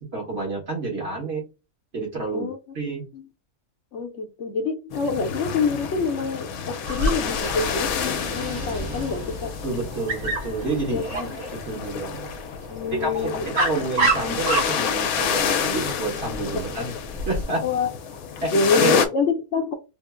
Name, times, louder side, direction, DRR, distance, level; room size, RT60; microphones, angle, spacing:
voice 1, 0.0-1.4 1.9-2.5 2.7-3.0 9.6-11.0 11.5-12.3 12.9-16.9 17.3-17.6 18.4-18.9, right 3 dB, 45° right, 1.6 m, -29 dB
voice 2, 3.9-6.5 6.9-9.5 10.9-11.3 12.7-13.5 16.8-16.9 17.6-17.9 18.5-19.7, left 4 dB, 60° left, 0.9 m, -26 dB
sound 1, 4.9-19.1, left 7 dB, 85° left, 1.1 m, -29 dB
Dog, 6.9-17.4, right 2 dB, 80° right, 1.7 m, -30 dB
3.6 x 2.0 x 3.4 m
omnidirectional pair, 1.5 m